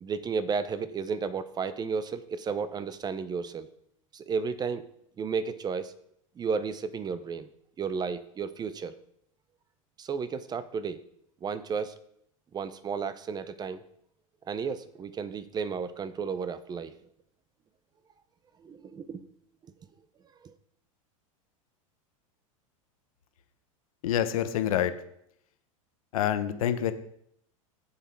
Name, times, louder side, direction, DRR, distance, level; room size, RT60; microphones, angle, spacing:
voice 1, 0.0-3.7 4.1-4.9 5.2-5.9 6.4-7.5 7.8-9.0 10.0-11.0 11.4-12.0 12.5-13.8 14.5-17.0 18.6-19.3 20.4-20.5, right 5 dB, 25° right, 14 dB, 0.6 m, -33 dB
voice 2, 24.0-24.9 26.1-26.9, left 10 dB, 80° left, 10 dB, 1.0 m, -26 dB
7.3 x 7.0 x 4.5 m, 0.72 s
hypercardioid pair, 115°, 18 cm